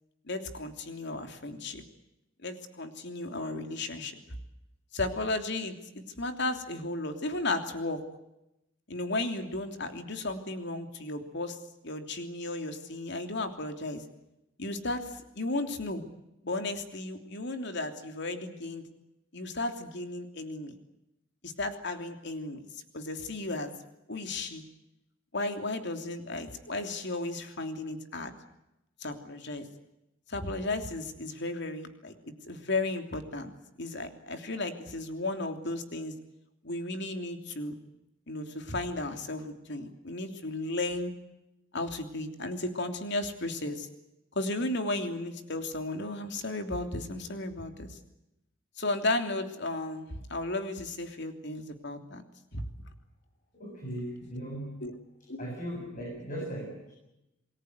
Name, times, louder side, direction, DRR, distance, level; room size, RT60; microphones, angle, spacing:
voice 1, 0.3-1.8 2.4-4.1 4.9-5.7 6.2-8.0 8.9-11.6 11.8-14.0 14.6-16.0 16.4-18.8 19.3-20.8 21.4-22.7 22.9-23.7 24.1-24.6 25.3-28.3 29.0-29.7 30.3-32.1 32.4-33.5 33.8-36.1 36.6-37.8 38.3-41.1 41.7-43.9 44.3-48.0 48.8-52.2 52.5-52.6 54.8-54.9 55.3-55.5, left 2 dB, 60° left, 6 dB, 3.1 m, -34 dB
voice 2, 53.5-54.8 55.4-56.9, right 1 dB, 40° left, -1 dB, 7.7 m, -38 dB
28.5 x 21.0 x 8.1 m, 0.89 s
head